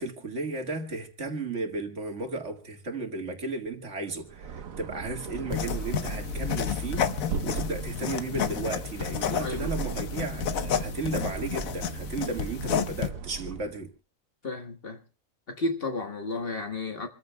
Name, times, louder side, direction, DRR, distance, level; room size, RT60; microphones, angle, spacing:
voice 1, 0.0-7.1 7.4-13.9, right 3 dB, 60° right, 2.1 m, -34 dB
sound 1, 4.2-13.8, right 5 dB, 80° right, 1.4 m, -37 dB
sound 2, 5.5-13.1, left 9 dB, 85° left, 1.4 m, -31 dB
voice 2, 9.4-9.7 14.4-15.0 15.5-17.1, left 2 dB, 45° left, 1.7 m, -32 dB
27.0 x 14.5 x 2.2 m
omnidirectional pair, 1.4 m